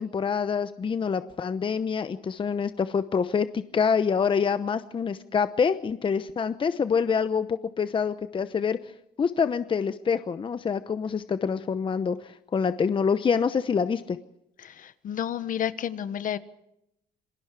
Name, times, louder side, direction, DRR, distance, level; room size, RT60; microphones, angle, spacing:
voice 1, 0.0-8.8 9.2-14.2, left 6 dB, 30° left, 0.9 m, -26 dB
voice 2, 14.6-16.4, left 10 dB, 50° left, 1.3 m, -31 dB
27.5 x 20.5 x 4.8 m
cardioid pair, 110°, 17 cm